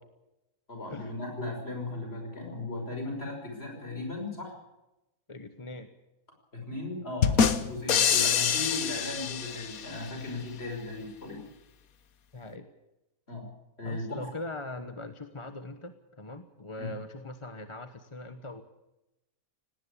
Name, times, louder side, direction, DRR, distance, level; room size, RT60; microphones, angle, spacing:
voice 1, 0.7-4.5 6.5-11.4 13.3-13.5 13.8-14.0 16.8-16.9, left 2 dB, 45° left, 2 dB, 6.0 m, -37 dB
voice 2, 5.3-5.9 12.3-12.7 13.8-18.6, left 2 dB, 25° left, 9 dB, 1.1 m, -41 dB
sound 1, 7.2-10.0, left 7 dB, 75° left, 1.5 m, -26 dB
18.5 x 18.0 x 8.4 m, 0.94 s
omnidirectional pair, 1.5 m